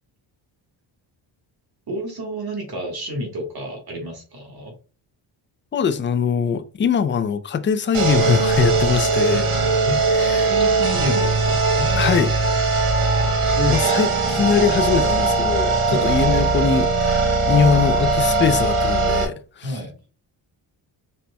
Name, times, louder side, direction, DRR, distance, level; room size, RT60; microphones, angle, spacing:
voice 1, 1.9-4.7 9.8-12.3 13.5-14.5 15.9-16.3 19.6-19.9, equal, 50° right, 1.6 m, -30 dB
voice 2, 5.7-9.5 10.1-10.5 12.0-12.3 13.7-19.8, left 6 dB, 25° left, 0.4 m, -22 dB
sound 1, 7.9-19.2, right 3 dB, 85° right, 1.4 m, -20 dB
4.2 x 4.1 x 2.2 m
cardioid pair, 95°, 48 cm